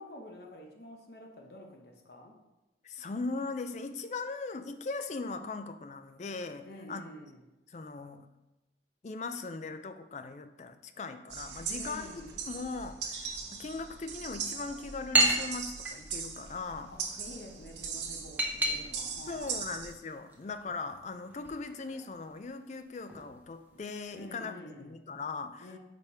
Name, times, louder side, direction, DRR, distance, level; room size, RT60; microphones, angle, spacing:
voice 1, 0.0-2.3 6.6-7.4 11.7-12.5 16.9-19.6 24.1-24.9 25.6-25.8, left 1 dB, 60° left, 1 dB, 0.9 m, -48 dB
voice 2, 2.8-7.0 7.7-8.3 9.0-16.9 19.3-25.7, left 3 dB, 40° left, 9 dB, 0.4 m, -39 dB
sound 1, 11.3-19.9, right 6 dB, 85° right, 0.9 m, -40 dB
sound 2, 14.3-24.3, right 2 dB, 10° right, 0.7 m, -35 dB
5.1 x 4.2 x 4.7 m, 1.0 s
head